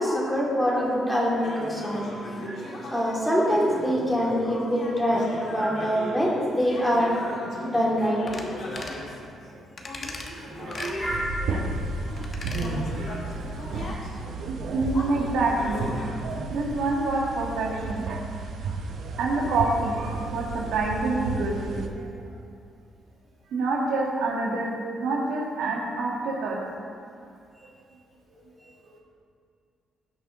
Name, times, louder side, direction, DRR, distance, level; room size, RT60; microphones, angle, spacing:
voice 1, 0.0-2.1 2.4-2.5 2.9-7.2 7.6-8.2 9.9-10.1 10.7-11.2, equal, 5° left, -4 dB, 2.4 m, -25 dB
sound 1, 1.4-11.2 11.6-16.3, left 1 dB, 60° left, 2.4 m, -38 dB
sound 2, 8.3-8.5 8.8-9.0 9.8-10.3 10.7-11.0 12.2-12.7 13.0-13.1, left 3 dB, 40° left, 1.1 m, -38 dB
voice 2, 9.8-11.0 11.4-11.5 12.0-13.4 14.6-15.8 16.5-18.0 18.3-18.4 19.2-22.3 23.5-26.6, right 2 dB, 90° right, -2 dB, 1.7 m, -28 dB
sound 3, 11.0-21.9, right 3 dB, 65° right, 1.0 m, -33 dB
16.5 x 5.8 x 3.9 m, 2.3 s
cardioid pair, 105°, 0 cm